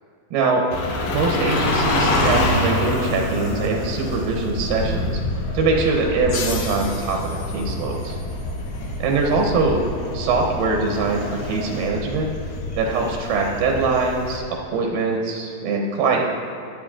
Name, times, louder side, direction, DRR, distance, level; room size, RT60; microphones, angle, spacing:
voice 1, 0.3-0.7 1.1-5.2 5.5-8.2 9.0-9.8 10.1-12.3 12.8-16.2, right 4 dB, 85° right, 0 dB, 3.0 m, -22 dB
Indian Auto rickshaw start leave and approach, 0.7-14.4, left 1 dB, 85° left, 3.5 m, -26 dB
Sad Chime Effect, 6.3-9.5, left 6 dB, 65° left, 2.4 m, -36 dB
22.5 x 8.4 x 3.8 m, 2.4 s
omnidirectional pair, 4.2 m